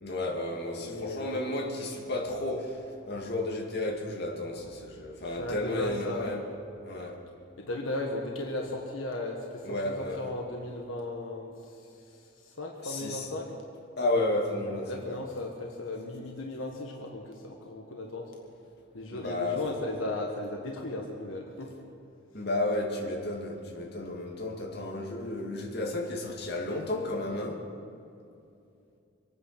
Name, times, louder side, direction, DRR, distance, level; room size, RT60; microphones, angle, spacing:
voice 1, 0.0-6.4 6.8-7.2 9.6-10.3 12.8-13.3 14.0-15.2 19.1-19.7 22.3-27.7, left 2 dB, 55° left, -1 dB, 2.2 m, -32 dB
voice 2, 0.8-1.4 5.4-6.4 7.7-11.5 12.5-13.5 14.9-18.3 18.9-21.7, left 2 dB, 80° left, 0 dB, 1.6 m, -36 dB
25.0 x 9.7 x 6.0 m, 2.6 s
head